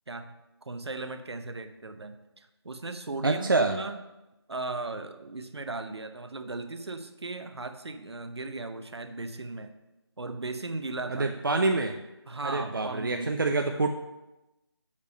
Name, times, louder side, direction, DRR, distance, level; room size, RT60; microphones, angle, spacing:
voice 1, 0.6-4.0 4.5-9.7 10.2-11.3 12.3-13.4, right 3 dB, 70° right, 8 dB, 0.8 m, -37 dB
voice 2, 3.2-3.8 11.1-12.0 12.4-13.9, right 3 dB, 50° right, 4 dB, 0.5 m, -26 dB
6.9 x 5.3 x 5.3 m, 0.99 s
figure-of-eight pair, 175°, 14 cm